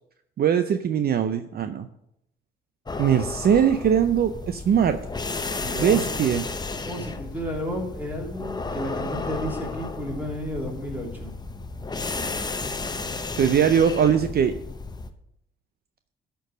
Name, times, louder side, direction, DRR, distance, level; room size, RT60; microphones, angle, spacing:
voice 1, 0.4-1.9 3.0-5.0 5.8-6.4 13.3-14.5, right 8 dB, 50° right, 9 dB, 0.6 m, -21 dB
sound 1, 2.9-15.1, left 3 dB, 20° left, 0.8 m, -33 dB
voice 2, 5.6-6.0 6.8-11.3, equal, 10° right, -2 dB, 3.0 m, -32 dB
12.0 x 4.6 x 6.3 m, 0.78 s
cardioid pair, 90°, 20 cm